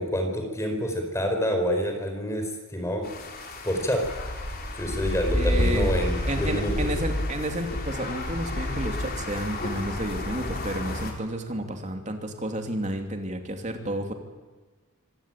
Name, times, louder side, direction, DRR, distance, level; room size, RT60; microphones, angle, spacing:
voice 1, 0.0-3.0 3.6-4.0 4.7-6.9, equal, 15° left, 4 dB, 4.5 m, -27 dB
sound 1, 3.0-11.1, left 1 dB, 45° left, 3.8 m, -30 dB
voice 2, 5.3-5.9 6.3-14.1, right 1 dB, 35° right, 5 dB, 2.8 m, -31 dB
25.5 x 17.0 x 9.1 m, 1.4 s
head